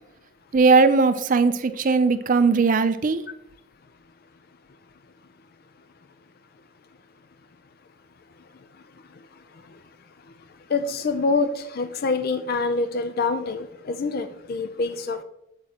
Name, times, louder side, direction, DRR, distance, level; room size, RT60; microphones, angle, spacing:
voice 1, 0.5-3.2, right 4 dB, 40° right, 11 dB, 0.4 m, -19 dB
voice 2, 10.7-15.2, left 3 dB, 45° left, 10 dB, 0.4 m, -26 dB
8.6 x 7.8 x 2.9 m, 0.80 s
head